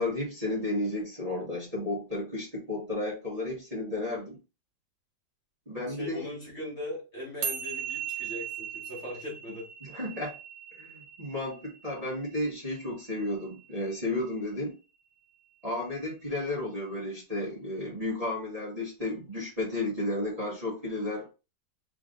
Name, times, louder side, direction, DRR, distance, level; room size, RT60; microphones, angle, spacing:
voice 1, 0.0-4.4 5.7-6.3 9.8-10.3 10.7-14.7 15.6-21.3, left 2 dB, 25° right, -6 dB, 1.5 m, -33 dB
voice 2, 5.9-9.7, left 1 dB, 40° left, -3 dB, 2.0 m, -39 dB
sound 1, 7.4-14.0, right 8 dB, 65° right, 1.1 m, -39 dB
3.7 x 3.6 x 3.8 m, 0.29 s
omnidirectional pair, 1.8 m